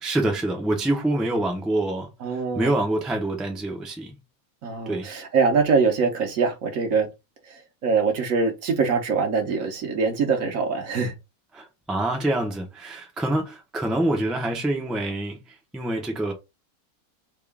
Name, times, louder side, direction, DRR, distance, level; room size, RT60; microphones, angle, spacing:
voice 1, 0.0-2.1 2.5-4.2 4.9-5.1 11.5-15.4 15.7-16.3, right 1 dB, ahead, 0.5 m, -26 dB
voice 2, 2.2-2.7 4.6-7.1 7.8-11.1, right 5 dB, 70° right, 1.3 m, -23 dB
3.6 x 2.3 x 3.4 m
omnidirectional pair, 1.5 m